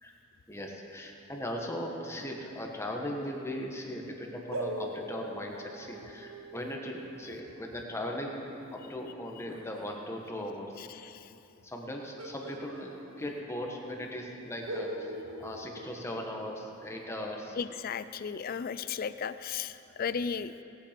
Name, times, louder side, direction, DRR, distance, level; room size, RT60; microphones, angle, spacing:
voice 1, 0.5-10.8 11.6-15.1 15.4-17.6 19.9-20.0, left 1 dB, 15° left, 0 dB, 1.3 m, -38 dB
sound 1, 4.5-9.9 12.2-13.6 13.9-14.0 14.6-16.8, right 1 dB, 80° right, 1.1 m, -42 dB
voice 2, 10.8-11.3 17.6-20.5, left 6 dB, 45° left, 14 dB, 0.4 m, -35 dB
17.5 x 8.7 x 5.2 m, 2.8 s
head